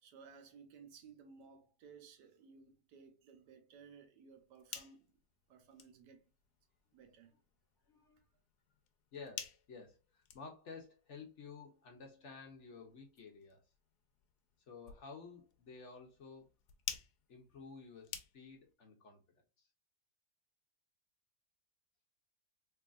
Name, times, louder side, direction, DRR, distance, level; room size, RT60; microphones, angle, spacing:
voice 1, 0.0-5.2 5.5-6.3 6.9-7.3, right 5 dB, 90° right, 1.4 m, -58 dB
sound 1, 4.3-18.7, left 9 dB, 75° left, 1.2 m, -53 dB
voice 2, 7.9-8.2 9.1-13.6 14.7-16.5 17.3-19.2 19.6-19.7, left 4 dB, 55° left, 0.9 m, -53 dB
3.7 x 3.1 x 2.4 m
omnidirectional pair, 1.8 m